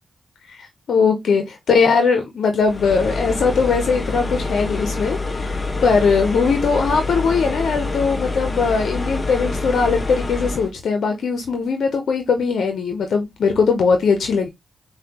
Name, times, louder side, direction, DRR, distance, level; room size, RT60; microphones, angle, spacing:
voice 1, 0.5-14.5, left 5 dB, 80° left, 0.6 m, -20 dB
sound 1, 2.6-10.7, left 3 dB, 30° left, 0.8 m, -26 dB
5.2 x 2.2 x 2.8 m
cardioid pair, 55°, 0 cm